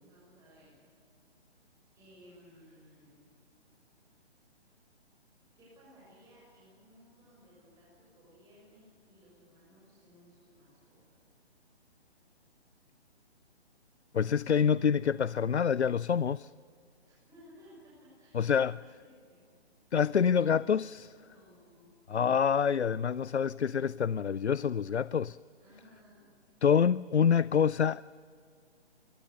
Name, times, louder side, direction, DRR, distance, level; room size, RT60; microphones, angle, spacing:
voice 1, 0.0-0.8 1.9-3.2 5.6-11.3 17.0-19.5 21.2-21.9 25.6-26.3, equal, 10° right, 7.0 m, -59 dB
voice 2, 14.1-16.5 18.3-18.8 19.9-21.2 22.1-25.4 26.6-28.0, left 7 dB, 85° left, 0.5 m, -26 dB
24.5 x 23.0 x 6.8 m
figure-of-eight pair, 135°, 33 cm